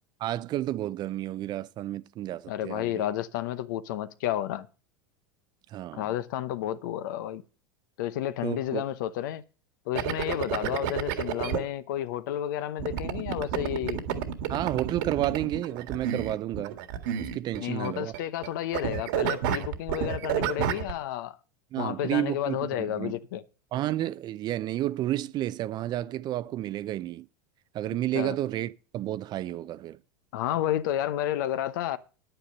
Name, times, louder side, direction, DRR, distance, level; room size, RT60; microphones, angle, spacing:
voice 1, 0.2-3.0 5.7-6.1 8.4-8.8 14.5-16.8 17.2-18.1 21.7-23.2 23.7-27.3 27.7-30.0, right 13 dB, 40° right, 0.5 m, -31 dB
voice 2, 2.5-4.7 5.9-7.4 8.0-9.4 9.9-14.0 17.6-21.4 21.8-23.4 28.1-28.4 30.3-32.0, left 12 dB, 70° left, 0.8 m, -31 dB
sound 1, 9.9-11.6 12.8-17.9 18.1-18.5 18.7-20.9, right 9 dB, 65° right, 1.8 m, -30 dB
10.0 x 9.0 x 5.3 m
hypercardioid pair, 100°, 11 cm